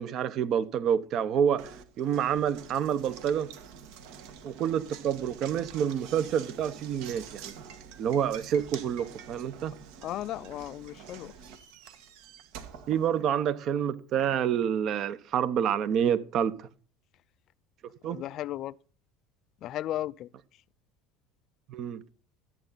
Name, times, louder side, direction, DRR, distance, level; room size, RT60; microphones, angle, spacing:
voice 1, 0.0-1.7 2.0-3.5 4.4-7.5 8.0-9.8 12.9-16.7 18.0-18.2 21.7-22.0, right 8 dB, 55° right, 0.9 m, -28 dB
Knock, 1.6-13.7, right 7 dB, 75° right, 1.6 m, -47 dB
voice 2, 10.0-11.3 18.1-18.7 19.6-20.3, left 13 dB, 55° left, 0.4 m, -35 dB
14.0 x 8.9 x 4.0 m
supercardioid pair, 95°, 0 cm